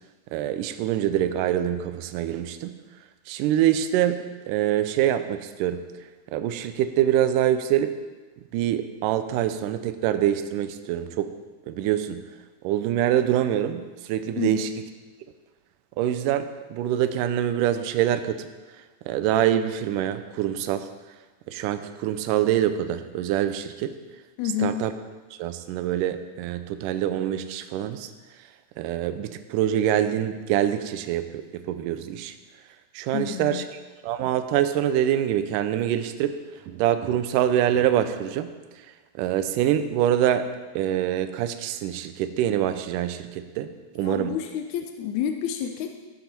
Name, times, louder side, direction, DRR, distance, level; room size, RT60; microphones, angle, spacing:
voice 1, 0.3-2.8 3.3-4.2 4.5-5.8 6.3-8.0 8.5-11.3 11.7-12.2 12.6-14.7 16.0-18.5 19.1-20.9 21.5-24.0 24.6-24.9 25.4-28.1 28.8-32.4 32.9-33.6 34.0-36.4 36.7-38.5 39.2-40.5 40.8-44.4, right 11 dB, 80° right, 10 dB, 2.0 m, -25 dB
voice 2, 24.4-24.8 33.1-33.7 44.0-45.9, left 9 dB, 80° left, 6 dB, 1.7 m, -29 dB
13.0 x 7.4 x 5.3 m, 1.3 s
omnidirectional pair, 4.2 m